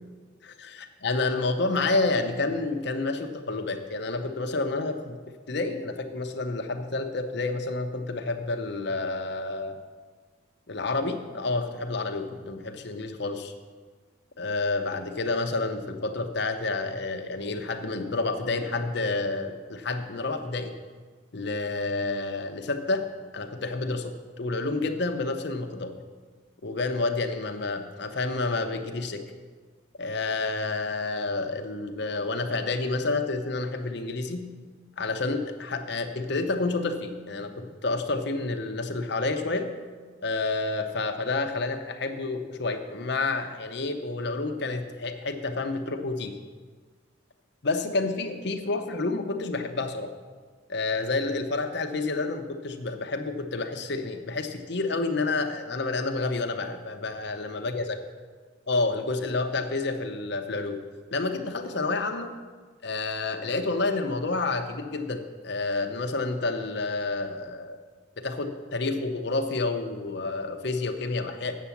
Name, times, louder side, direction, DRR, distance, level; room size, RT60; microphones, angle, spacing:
voice 1, 0.4-5.2 5.5-9.7 10.7-13.5 14.4-20.7 21.3-23.1 23.3-26.0 26.6-29.2 30.0-34.5 35.0-39.7 40.2-46.4 47.6-50.1 50.7-58.0 58.7-60.8 61.1-62.3 62.8-67.8 68.2-71.6, left 3 dB, 55° left, 6 dB, 0.8 m, -29 dB
8.3 x 6.9 x 7.1 m, 1.5 s
head